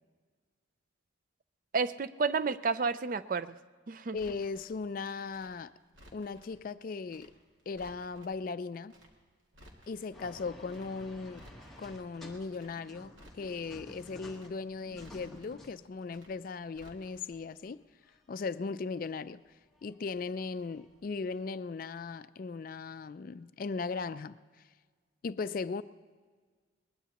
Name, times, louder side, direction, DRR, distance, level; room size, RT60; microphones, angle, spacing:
voice 1, 1.7-3.6 3.9-4.2, right 4 dB, 45° right, 0.4 m, -31 dB
voice 2, 4.1-5.7 6.1-7.3 7.7-8.9 9.9-11.5 11.8-17.8 18.3-19.4 19.8-24.4 25.2-25.8, left 4 dB, 45° left, 0.3 m, -38 dB
Crackle, 4.1-4.8 5.3-6.6 7.1-7.3 7.6-8.4 8.9-9.1 9.4-10.2 10.7-10.9 11.2-12.0 12.5-12.7 13.0-13.8 14.3-14.5 14.8-15.6 16.1-16.3 16.6-17.4 17.6-17.7, equal, 75° right, 2.3 m, -57 dB
sound 1, 10.1-16.3 17.0-17.1 17.3-18.2 18.6-21.4, equal, ahead, 1.2 m, -53 dB
20.5 x 20.5 x 2.9 m
head